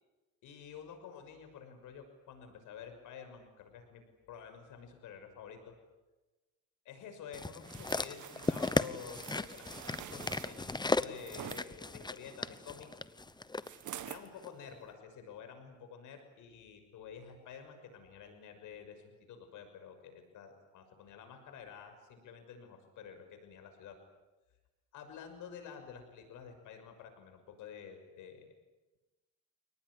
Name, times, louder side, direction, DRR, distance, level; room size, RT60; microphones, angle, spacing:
voice 1, 0.4-5.8 6.8-10.7 11.0-13.0 14.0-24.0 24.9-28.5, left 7 dB, 85° left, 6 dB, 6.3 m, -50 dB
sound 1, 7.3-13.7 14.4-14.5, left 3 dB, 15° left, 1.0 m, -36 dB
sound 2, 7.6-11.7 13.6-14.3 14.8-14.9, right 11 dB, 75° right, 1.8 m, -48 dB
29.5 x 19.0 x 9.9 m, 1.1 s
cardioid pair, 90°, 30 cm